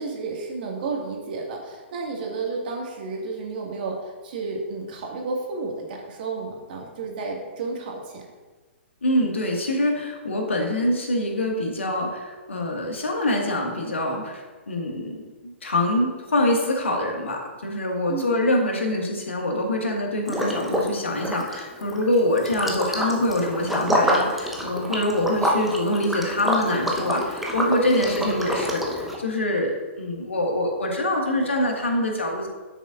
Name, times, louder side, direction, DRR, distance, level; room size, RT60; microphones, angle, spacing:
voice 1, 0.0-8.2 18.1-18.4 27.8-28.2, right 3 dB, 45° right, 0 dB, 2.0 m, -32 dB
voice 2, 9.0-15.2 15.4-32.5, left 1 dB, 70° left, 1 dB, 1.8 m, -25 dB
Liquid, 20.3-20.9 21.2-29.2, equal, ahead, 1.0 m, -26 dB
10.0 x 8.0 x 2.5 m, 1.3 s
figure-of-eight pair, 120°, 7 cm